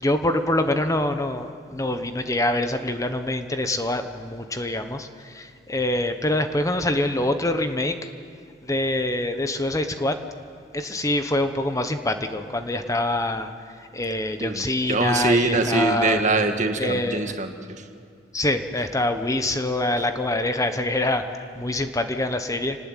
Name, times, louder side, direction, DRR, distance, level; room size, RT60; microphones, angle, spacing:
voice 1, 0.0-8.0 8.6-10.2 10.7-13.5 13.9-16.2 16.8-17.3 18.3-22.8, left 1 dB, 20° left, 8 dB, 1.1 m, -25 dB
voice 2, 14.4-17.9, right 3 dB, 45° right, 6 dB, 1.8 m, -23 dB
27.0 x 19.0 x 9.2 m, 2.3 s
head